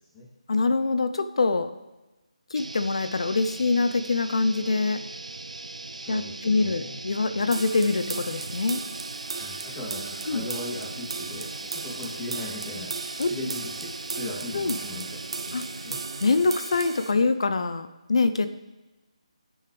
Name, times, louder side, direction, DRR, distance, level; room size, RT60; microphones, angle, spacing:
voice 1, 0.5-1.7 2.5-5.0 6.1-8.8 10.3-10.5 13.2-13.3 14.5-14.8 15.5-15.6 16.2-18.5, left 3 dB, 55° left, 11 dB, 0.8 m, -24 dB
sound 1, 2.5-16.3, right 2 dB, 80° right, 0.6 m, -40 dB
voice 2, 5.9-7.0 9.3-12.9 13.3-13.7 14.2-15.2 15.4-16.0, left 2 dB, 20° left, -5 dB, 2.9 m, -38 dB
sound 2, 7.5-17.1, right 4 dB, 50° right, 1.4 m, -36 dB
23.0 x 10.0 x 3.4 m, 1.1 s
figure-of-eight pair, 150°, 4 cm